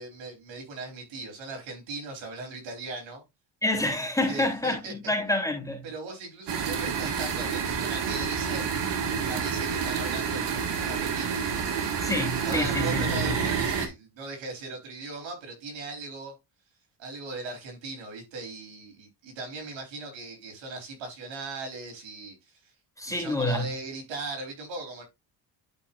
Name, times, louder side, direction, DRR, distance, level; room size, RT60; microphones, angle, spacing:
voice 1, 0.0-3.2 4.3-4.9 5.8-8.8 9.3-11.5 12.4-16.3 17.0-22.7 23.1-25.0, right 3 dB, 80° right, 3.6 m, -39 dB
voice 2, 3.6-5.9 12.0-13.3 23.0-23.7, left 1 dB, 5° left, 3.1 m, -28 dB
sound 1, 6.5-13.9, right 6 dB, 65° right, 1.9 m, -29 dB
11.0 x 5.2 x 2.5 m
cardioid pair, 115°, 45 cm